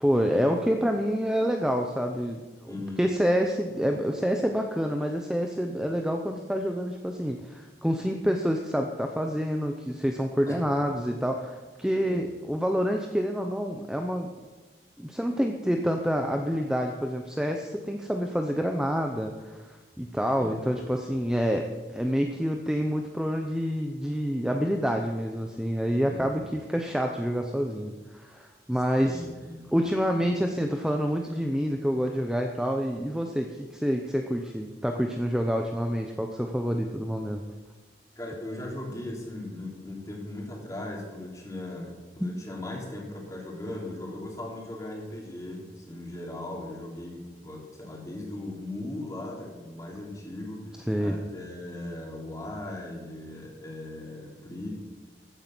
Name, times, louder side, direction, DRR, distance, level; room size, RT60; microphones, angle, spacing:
voice 1, 0.0-14.3 15.0-29.2 29.7-37.4 50.9-51.1, equal, 5° right, 3 dB, 0.7 m, -27 dB
voice 2, 2.7-3.0 10.5-10.6 12.0-12.2 20.4-20.6 26.0-26.3 29.1-29.6 38.2-54.7, left 1 dB, 20° left, -2 dB, 3.3 m, -38 dB
14.5 x 9.4 x 6.1 m, 1.3 s
head